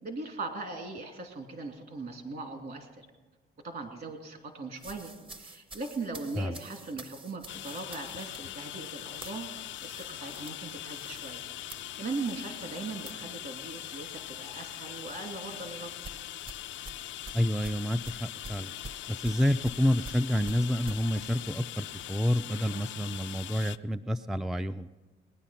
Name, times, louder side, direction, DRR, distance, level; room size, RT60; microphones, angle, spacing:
voice 1, 0.0-3.1 3.6-5.1 5.4-9.5 9.8-11.4 12.0-16.0, right 3 dB, 50° right, 4 dB, 2.7 m, -39 dB
sound 1, 4.8-14.4 14.7-15.0 16.0-21.0, right 2 dB, 25° right, 0.8 m, -48 dB
sound 2, 7.5-23.8, left 13 dB, 70° left, 0.4 m, -41 dB
voice 2, 17.3-18.7 19.1-24.9, equal, ahead, 10 dB, 0.4 m, -29 dB
19.5 x 9.9 x 5.7 m, 1.2 s
cardioid pair, 90°, 20 cm